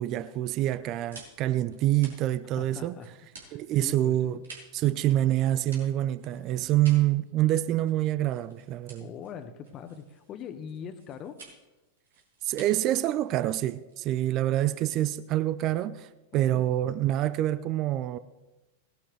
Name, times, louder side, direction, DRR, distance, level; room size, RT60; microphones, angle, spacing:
voice 1, 0.0-3.0 3.5-4.4 4.7-9.1 12.4-18.2, right 13 dB, 40° right, 0.5 m, -26 dB
sound 1, 0.6-15.2, right 3 dB, 80° right, 4.0 m, -53 dB
voice 2, 2.6-3.1 3.4-4.4 9.0-11.4 16.3-16.6, left 8 dB, 35° left, 1.3 m, -42 dB
18.5 x 11.5 x 3.4 m
hypercardioid pair, 100°, 0 cm